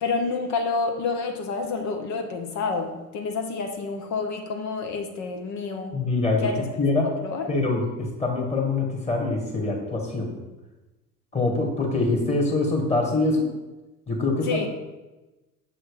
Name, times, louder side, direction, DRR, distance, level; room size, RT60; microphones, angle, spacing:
voice 1, 0.0-6.0 6.4-6.6 7.2-7.5 14.4-14.7, left 4 dB, 40° left, 4 dB, 0.8 m, -28 dB
voice 2, 5.9-6.5 6.8-7.1 7.5-10.4 11.3-13.5 14.1-14.7, left 3 dB, 15° left, 0 dB, 1.6 m, -24 dB
6.3 x 3.2 x 4.8 m, 1.1 s
figure-of-eight pair, 75°, 45 cm